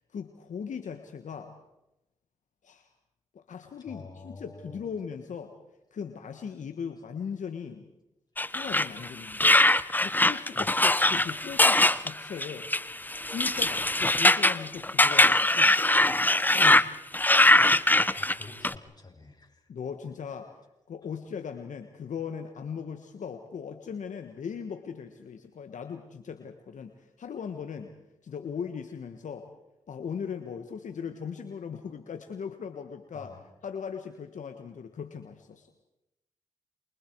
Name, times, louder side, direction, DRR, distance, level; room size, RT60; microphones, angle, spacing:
voice 1, 0.1-1.5 2.6-2.9 3.3-5.6 5.9-7.9 8.5-9.6 10.0-12.7 13.2-15.8 16.5-16.9 19.7-20.5 20.9-27.9 28.2-29.5 29.9-33.4 33.6-35.7, left 7 dB, 70° left, 6 dB, 1.5 m, -38 dB
voice 2, 3.8-4.9 10.5-10.8 18.2-19.6 33.1-33.4, left 3 dB, 30° left, 1 dB, 6.9 m, -48 dB
sound 1, 8.4-16.8 17.1-18.7, left 1 dB, 15° left, 0.9 m, -22 dB
28.5 x 24.5 x 4.8 m, 0.92 s
supercardioid pair, 45°, 13 cm